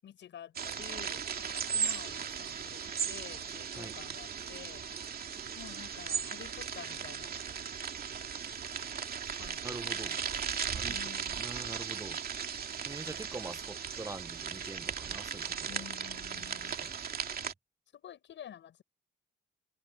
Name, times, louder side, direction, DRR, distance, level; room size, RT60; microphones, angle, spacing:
voice 1, 0.0-4.8 5.5-7.4 9.3-10.2 10.9-11.6 15.7-16.9 17.9-18.8, left 10 dB, 70° left, 6.5 m, -50 dB
sound 1, 0.6-17.5, right 7 dB, 50° right, 2.6 m, -37 dB
voice 2, 9.6-10.2 10.7-11.0 11.4-12.2 12.4-15.8 16.4-17.0, right 3 dB, 15° right, 0.9 m, -45 dB
cardioid pair, 90°, 20 cm